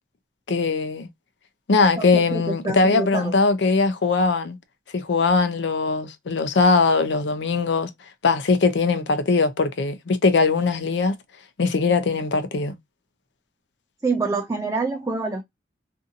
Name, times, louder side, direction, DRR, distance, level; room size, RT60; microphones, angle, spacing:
voice 1, 0.5-1.1 1.7-4.6 4.9-7.9 8.2-11.2 11.6-12.7, left 4 dB, 90° left, 0.5 m, -20 dB
voice 2, 2.0-3.3 14.0-15.4, right 3 dB, 20° right, 0.3 m, -26 dB
2.6 x 2.6 x 2.5 m
head